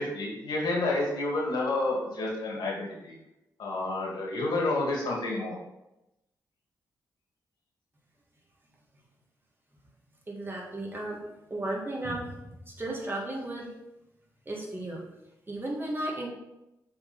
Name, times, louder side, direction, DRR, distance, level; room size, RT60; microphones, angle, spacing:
voice 1, 0.0-3.2 3.6-5.6, left 2 dB, 75° left, -2 dB, 2.2 m, -29 dB
voice 2, 10.3-11.2 11.5-12.4 12.8-13.7 14.5-15.0 15.5-16.3, right 1 dB, 30° right, -2 dB, 2.2 m, -34 dB
6.5 x 4.2 x 4.1 m, 0.91 s
cardioid pair, 55°, 7 cm